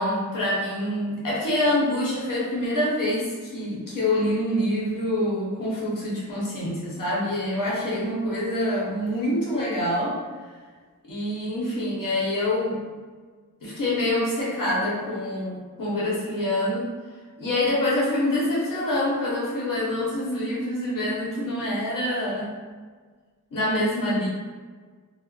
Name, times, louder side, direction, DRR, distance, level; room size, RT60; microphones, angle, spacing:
voice 1, 0.0-10.1 11.0-12.9 13.6-16.9 17.4-22.6 23.5-24.3, left 1 dB, 85° left, -7 dB, 1.1 m, -26 dB
2.5 x 2.0 x 3.7 m, 1.5 s
wide cardioid pair, 95°, 32 cm